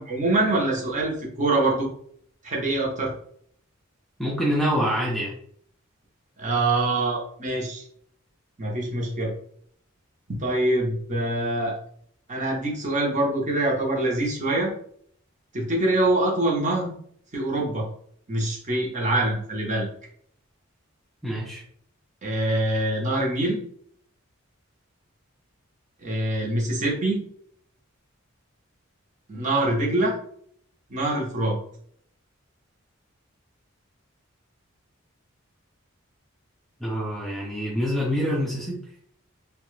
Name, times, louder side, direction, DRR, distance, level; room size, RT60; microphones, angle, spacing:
voice 1, 0.0-1.9 2.4-3.1 6.4-7.8 8.6-9.3 10.3-11.8 12.3-14.7 15.5-16.9 17.3-17.9 18.3-19.9 22.2-23.6 26.0-27.2 29.3-30.2 30.9-31.6, right 2 dB, 35° right, -1 dB, 0.8 m, -24 dB
voice 2, 4.2-5.3 21.2-21.6 36.8-38.8, equal, ahead, -4 dB, 0.5 m, -26 dB
2.9 x 2.2 x 3.1 m, 0.62 s
head